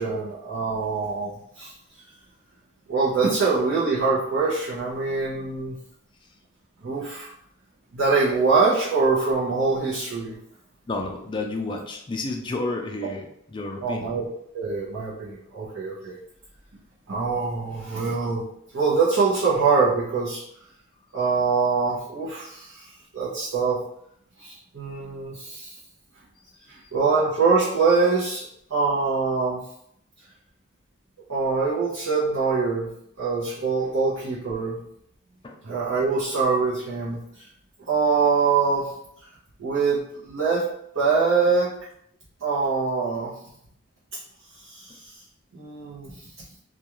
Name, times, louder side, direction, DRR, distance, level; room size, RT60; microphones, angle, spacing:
voice 1, 0.0-1.7 2.9-5.8 6.8-7.3 7.9-10.4 13.0-13.1 13.8-14.3 14.5-16.2 17.1-18.4 18.7-20.4 21.1-22.8 23.1-23.8 24.4-25.7 26.7-29.6 31.3-32.9 33.2-34.8 35.6-37.5 37.9-38.9 39.6-40.7 40.9-41.8 42.4-43.3 44.6-45.1 45.5-46.3, right 4 dB, 80° right, -8 dB, 0.7 m, -24 dB
voice 2, 10.9-14.1 26.5-26.9 35.4-35.6, left 2 dB, 25° left, 2 dB, 0.3 m, -31 dB
2.3 x 2.3 x 2.9 m, 0.73 s
head